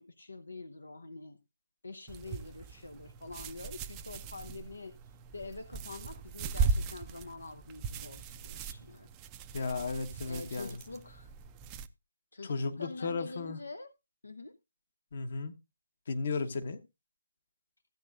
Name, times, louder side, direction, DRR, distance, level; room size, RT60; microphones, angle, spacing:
voice 1, 0.0-1.4 1.8-5.0 5.3-9.1 10.2-11.3 12.3-13.9 14.2-14.5, left 3 dB, 80° left, 0.7 m, -45 dB
sound 1, 2.1-11.9, right 5 dB, 20° right, 0.5 m, -38 dB
voice 2, 9.5-10.7 12.4-13.6 15.1-15.5 16.1-16.8, left 4 dB, 50° left, 1.1 m, -34 dB
14.5 x 8.8 x 2.5 m
figure-of-eight pair, 145°, 0 cm